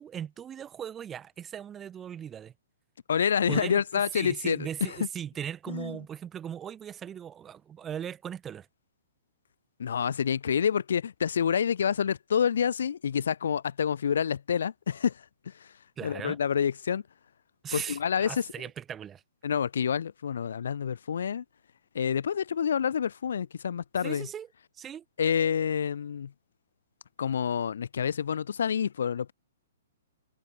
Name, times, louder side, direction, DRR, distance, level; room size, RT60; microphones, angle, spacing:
voice 1, 0.0-2.5 3.5-8.7 16.0-16.4 17.6-19.2 24.0-24.5 24.8-25.0, right 9 dB, 15° right, 1.3 m, -38 dB
voice 2, 3.1-5.0 5.7-6.0 9.8-15.7 16.0-17.0 17.7-18.5 19.4-21.4 21.9-24.3 25.2-26.3 27.2-29.3, left 7 dB, 75° left, 0.4 m, -28 dB
hypercardioid pair, 170°, 0 cm